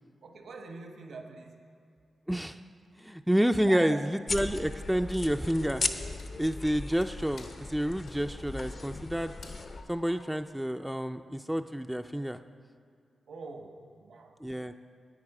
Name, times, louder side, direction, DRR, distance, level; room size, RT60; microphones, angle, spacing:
voice 1, 0.2-1.7 3.6-4.1 13.3-14.4, right 4 dB, 75° right, 4 dB, 1.1 m, -43 dB
voice 2, 2.3-2.6 3.0-5.8 6.4-9.3 9.9-12.4 14.4-14.7, equal, 5° right, 7 dB, 0.3 m, -29 dB
sound 1, 4.3-9.8, left 3 dB, 55° left, 0.7 m, -37 dB
Wood, 4.4-11.1, left 3 dB, 75° left, 1.4 m, -55 dB
11.0 x 9.3 x 4.9 m, 2.3 s
cardioid pair, 60°, 0 cm